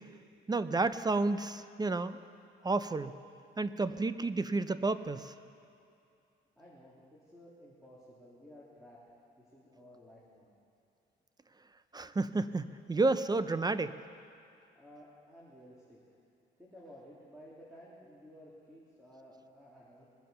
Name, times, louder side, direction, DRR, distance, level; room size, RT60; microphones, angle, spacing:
voice 1, 0.5-2.2 2.6-3.1 3.6-5.3 11.9-14.0, right 3 dB, 20° right, 13 dB, 0.5 m, -31 dB
voice 2, 6.6-9.0 9.4-10.5 14.7-16.0 16.6-20.1, equal, 5° right, -7 dB, 3.1 m, -55 dB
21.0 x 7.5 x 6.9 m, 2.5 s
cardioid pair, 90°, 20 cm